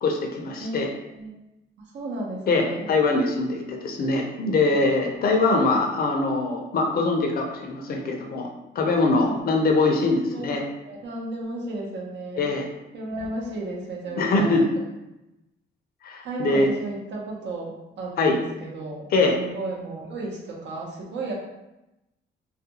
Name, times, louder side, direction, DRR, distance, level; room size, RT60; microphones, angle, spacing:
voice 1, 0.0-0.9 2.5-8.5 8.8-10.6 12.4-12.7 14.2-14.6 16.0-16.7 18.2-18.4 19.1-19.4, left 3 dB, 50° left, 2 dB, 0.5 m, -22 dB
voice 2, 1.8-2.9 5.2-5.3 9.2-9.4 10.3-12.5 12.9-14.5 16.2-21.3, right 2 dB, 65° right, -2 dB, 0.7 m, -34 dB
2.4 x 2.2 x 2.8 m, 0.95 s
cardioid pair, 90°, 20 cm